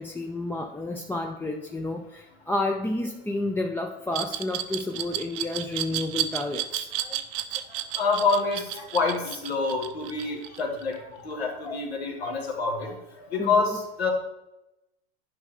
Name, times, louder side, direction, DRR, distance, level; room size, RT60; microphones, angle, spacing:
voice 1, 0.0-6.9 13.4-13.8, left 2 dB, 5° left, 3 dB, 0.5 m, -30 dB
Glass, 4.1-11.0, right 13 dB, 60° right, 0.7 m, -31 dB
voice 2, 7.7-13.0 13.3-14.1, left 4 dB, 85° left, 0 dB, 1.9 m, -27 dB
10.5 x 5.3 x 3.7 m, 0.94 s
hypercardioid pair, 90°, 31 cm